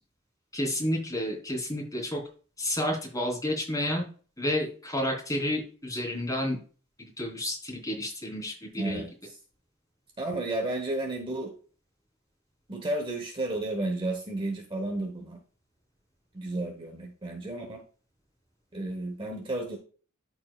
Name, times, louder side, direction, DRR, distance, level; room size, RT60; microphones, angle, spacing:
voice 1, 0.5-2.2 2.6-4.0 4.4-6.6 7.0-9.0, left 1 dB, 15° left, -2 dB, 3.6 m, -30 dB
voice 2, 8.8-9.1 10.2-11.5 12.7-15.4 16.3-17.8 18.7-19.8, right 2 dB, 25° right, 3 dB, 1.0 m, -32 dB
13.0 x 4.8 x 2.4 m, 0.40 s
head